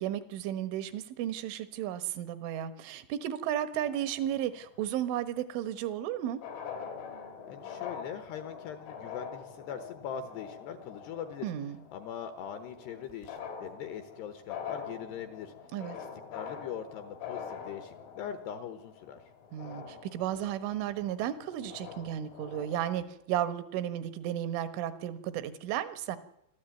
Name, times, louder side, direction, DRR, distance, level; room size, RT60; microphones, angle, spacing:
voice 1, 0.0-6.4 11.4-11.8 15.7-16.0 19.5-26.2, right 11 dB, 75° right, 12 dB, 3.7 m, -34 dB
sound 1, 3.8-4.9 6.0-6.1 6.3-22.8, left 7 dB, 90° left, 6.5 m, -44 dB
voice 2, 7.5-11.5 11.9-15.5 15.9-16.1 16.3-19.2, left 8 dB, 70° left, 10 dB, 2.6 m, -41 dB
26.0 x 13.5 x 9.1 m, 0.78 s
omnidirectional pair, 5.9 m